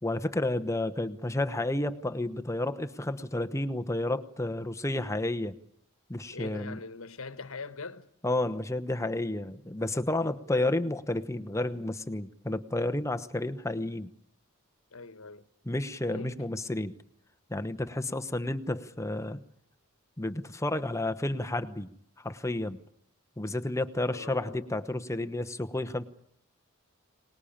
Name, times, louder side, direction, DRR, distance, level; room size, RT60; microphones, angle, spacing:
voice 1, 0.0-5.6 6.1-6.8 8.2-14.1 15.6-16.9 17.5-19.4 20.2-21.9 22.2-22.8 23.4-26.0, left 1 dB, 15° left, 1.0 m, -31 dB
voice 2, 6.3-8.1 10.3-10.4 14.9-15.5 16.1-16.4 24.1-24.7, left 4 dB, 70° left, 1.4 m, -42 dB
25.0 x 20.0 x 8.7 m
head